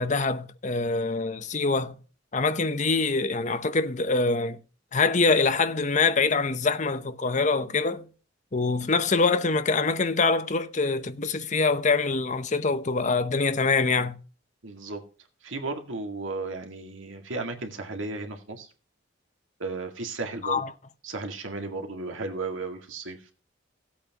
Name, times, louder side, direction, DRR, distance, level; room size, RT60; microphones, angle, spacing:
voice 1, 0.0-2.0 2.3-4.6 4.9-8.1 8.5-14.2 20.4-20.7, left 4 dB, 40° left, 0.8 m, -24 dB
voice 2, 14.6-15.0 15.4-18.7 19.6-20.6 21.0-23.2, right 3 dB, 85° right, 2.1 m, -34 dB
16.0 x 8.5 x 3.0 m
head